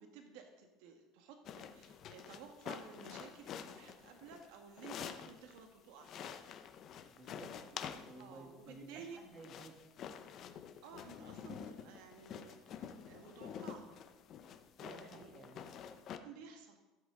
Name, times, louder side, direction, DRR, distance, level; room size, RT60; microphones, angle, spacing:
voice 1, 0.0-6.4 8.2-9.2 10.8-13.9 15.6-15.7 16.2-16.8, right 6 dB, 75° right, 4 dB, 1.3 m, -54 dB
sound 1, 1.4-5.6 6.0-8.4 9.1-16.2, left 8 dB, 40° left, 0.7 m, -48 dB
voice 2, 7.0-9.8 14.8-15.6, right 2 dB, 25° right, 1 dB, 1.8 m, -54 dB
14.0 x 7.7 x 3.7 m, 1.1 s
cardioid pair, 155°, 0 cm